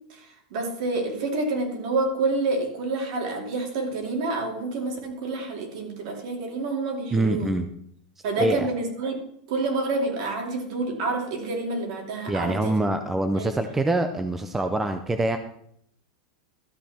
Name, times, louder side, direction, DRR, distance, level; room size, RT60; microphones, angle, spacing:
voice 1, 0.1-7.5 8.2-9.2 9.5-12.8 13.4-13.6, right 3 dB, 50° right, 2 dB, 2.8 m, -28 dB
voice 2, 7.1-7.7 8.4-8.7 12.3-15.4, right 2 dB, 5° right, 8 dB, 0.5 m, -24 dB
13.0 x 8.0 x 4.3 m, 0.71 s
supercardioid pair, 170°, 4 cm